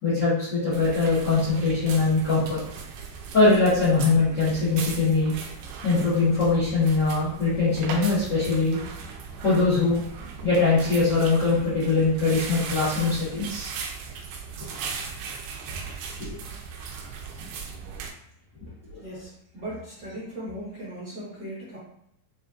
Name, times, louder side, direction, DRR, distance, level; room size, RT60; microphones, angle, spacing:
voice 1, 0.0-2.6 3.3-5.3 5.8-8.8 9.4-10.0 10.4-13.7 16.2-16.4 18.9-19.0, left 3 dB, 85° left, -11 dB, 0.9 m, -22 dB
sound 1, 0.7-18.1, right 5 dB, 80° right, 2.6 m, -38 dB
voice 2, 19.0-19.3 19.5-21.8, right 1 dB, 50° right, -10 dB, 1.2 m, -37 dB
7.3 x 2.7 x 2.5 m, 0.74 s
omnidirectional pair, 4.5 m